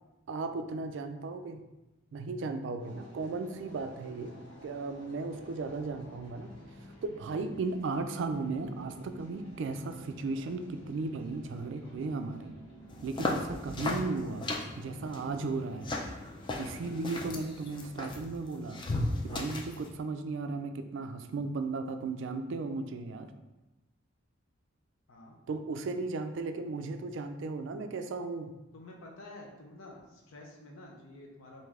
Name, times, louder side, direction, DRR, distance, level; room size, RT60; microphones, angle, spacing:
voice 1, 0.3-1.6 2.1-6.5 7.0-12.5 13.0-14.5 14.8-15.9 16.6-18.8 19.2-23.3 25.5-28.5, right 3 dB, 65° right, 7 dB, 0.3 m, -35 dB
sound 1, 2.8-19.1, equal, 50° left, 1.3 m, -52 dB
sound 2, 12.9-19.9, left 2 dB, 25° left, 0.3 m, -36 dB
voice 2, 28.7-31.7, left 2 dB, 85° left, 0 dB, 0.6 m, -50 dB
3.2 x 2.7 x 3.5 m, 1.0 s
head